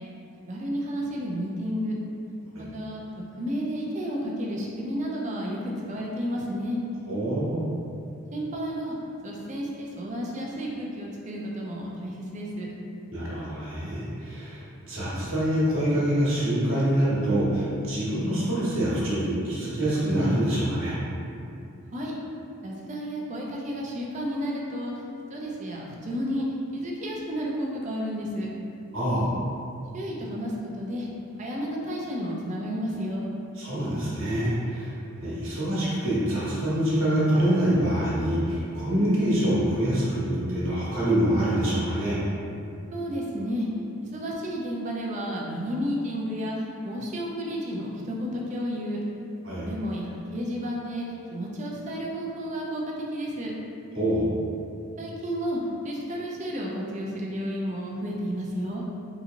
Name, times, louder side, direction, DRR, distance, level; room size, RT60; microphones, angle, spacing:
voice 1, 0.5-1.9 2.6-6.8 8.3-9.0 9.2-12.7 21.9-22.1 22.6-25.0 25.3-26.5 26.7-28.5 29.9-31.1 31.4-33.3 42.9-43.7 44.0-49.0 49.6-53.5 55.0-58.8, equal, 35° right, -2 dB, 0.4 m, -32 dB
voice 2, 7.1-7.7 13.1-21.0 28.9-29.3 33.6-42.2 49.4-49.6 53.9-54.3, right 1 dB, 65° right, -9 dB, 1.1 m, -25 dB
3.9 x 2.8 x 2.5 m, 2.6 s
head